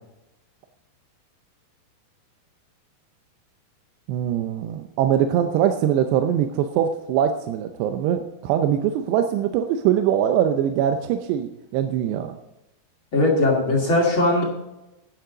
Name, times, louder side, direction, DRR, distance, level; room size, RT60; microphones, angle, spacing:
voice 1, 4.1-12.3, right 10 dB, 85° right, 7 dB, 2.9 m, -22 dB
voice 2, 13.1-14.4, left 2 dB, 35° left, -2 dB, 2.5 m, -19 dB
11.5 x 10.5 x 3.9 m, 0.93 s
omnidirectional pair, 4.8 m